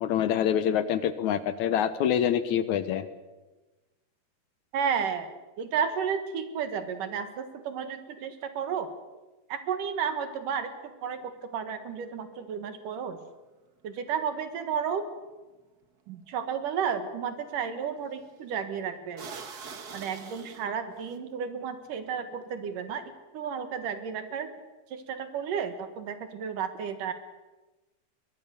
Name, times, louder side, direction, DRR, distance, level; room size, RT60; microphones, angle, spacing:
voice 1, 0.0-3.1, left 9 dB, 70° left, 13 dB, 2.1 m, -26 dB
voice 2, 4.7-5.3 5.6-8.9 9.5-13.2 13.8-15.0 16.1-19.3 19.9-23.0 23.3-24.5 24.9-27.1, right 7 dB, 75° right, 9 dB, 3.2 m, -32 dB
sound 1, 15.8-15.9 18.2-18.4 19.2-21.2, right 5 dB, 45° right, 1.2 m, -43 dB
22.5 x 22.0 x 6.9 m, 1.1 s
omnidirectional pair, 3.8 m